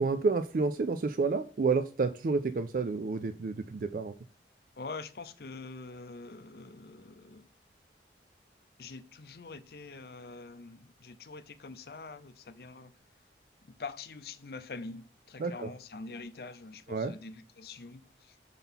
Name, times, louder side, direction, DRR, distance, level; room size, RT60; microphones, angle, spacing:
voice 1, 0.0-4.1 15.4-15.7 16.9-17.1, right 4 dB, 50° right, 0.4 m, -30 dB
voice 2, 4.8-7.5 8.8-12.9 13.6-18.4, left 3 dB, 60° left, 0.6 m, -45 dB
5.7 x 3.7 x 5.7 m
head